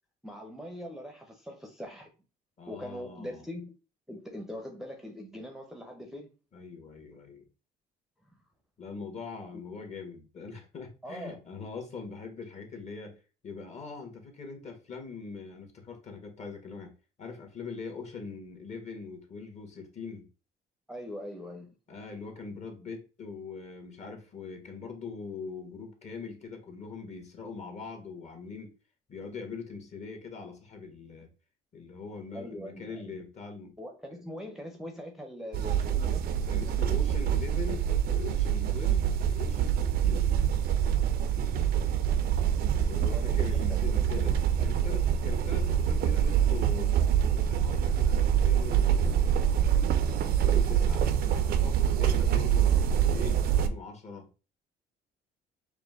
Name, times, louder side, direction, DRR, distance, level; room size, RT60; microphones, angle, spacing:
voice 1, 0.2-2.1 2.7-3.8 4.1-6.3 9.5-9.6 11.0-11.4 20.9-21.7 32.3-33.2 33.8-36.2 43.0-44.3, left 1 dB, ahead, 0.7 m, -42 dB
voice 2, 2.6-3.4 6.5-7.4 8.8-13.2 13.4-16.9 17.2-20.2 21.9-28.7 29.1-31.3 31.7-33.7 34.1-34.2 36.5-40.3 42.7-47.0 47.3-49.6 50.2-54.3, left 5 dB, 40° left, 1.3 m, -42 dB
sound 1, 35.5-53.7, right 9 dB, 65° right, 0.5 m, -25 dB
4.9 x 2.2 x 3.5 m
cardioid pair, 110°, 17 cm